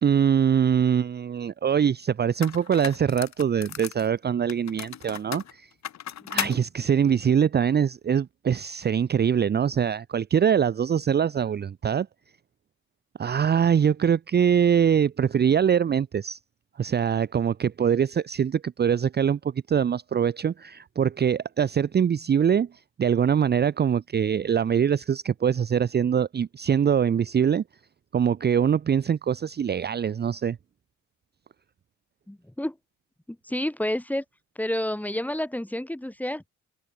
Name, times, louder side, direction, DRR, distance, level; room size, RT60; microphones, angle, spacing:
voice 1, 0.0-5.7 6.3-12.1 13.2-16.4 16.8-22.7 23.0-27.6 28.1-30.6, right 8 dB, 35° right, 0.6 m, -23 dB
sound 1, 1.8-1.9 2.4-4.1 4.5-6.6, left 11 dB, 65° left, 2.2 m, -35 dB
voice 2, 6.2-6.6 32.3-32.8 33.3-34.2 34.5-36.5, left 1 dB, 5° left, 2.9 m, -30 dB
cardioid pair, 90°, 30 cm